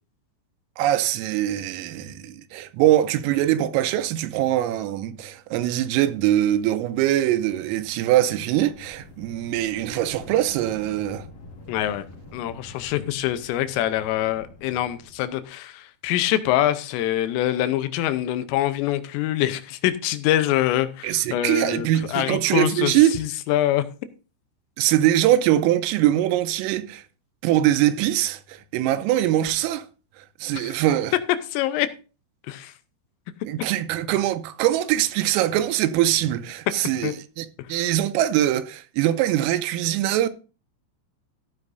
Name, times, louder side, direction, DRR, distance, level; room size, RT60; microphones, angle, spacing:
voice 1, 0.8-11.3 21.0-23.1 24.8-27.0 27.4-29.9 30.4-31.1 33.5-40.3, right 13 dB, 90° right, 3.5 m, -22 dB
sound 1, 8.4-15.4, left 3 dB, 45° left, 2.8 m, -45 dB
voice 2, 11.7-12.0 12.3-23.8 30.5-30.8 31.5-31.9 32.5-32.7 37.0-37.1 37.7-37.8, left 13 dB, 90° left, 3.4 m, -25 dB
14.5 x 9.7 x 2.7 m
omnidirectional pair, 5.8 m